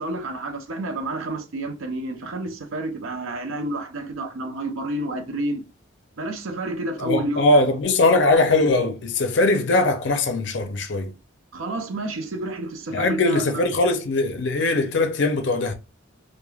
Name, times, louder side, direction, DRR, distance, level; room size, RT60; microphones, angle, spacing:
voice 1, 0.0-5.6 6.2-7.7 11.5-13.6, right 1 dB, 80° right, 0.5 m, -29 dB
voice 2, 7.0-11.1 12.9-15.7, left 2 dB, 60° left, 0.5 m, -21 dB
3.1 x 2.1 x 2.3 m
head